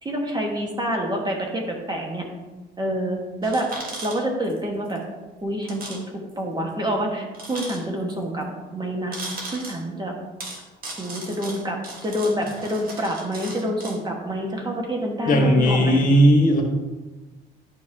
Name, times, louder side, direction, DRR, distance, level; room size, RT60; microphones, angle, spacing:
voice 1, 0.0-2.2 2.8-3.7 4.0-5.0 5.4-8.5 8.7-9.1 9.5-10.1 11.0-16.0, equal, 20° right, 1 dB, 1.4 m, -27 dB
sound 1, 3.4-4.6 4.9-5.0 5.6-6.0 6.3-6.4 7.3-8.1 9.1-9.8 10.4-14.0, right 2 dB, 45° right, 1.5 m, -37 dB
voice 2, 15.2-16.6, equal, 45° left, 1 dB, 1.4 m, -16 dB
10.5 x 4.6 x 2.7 m, 1.2 s
supercardioid pair, 90°, 20 cm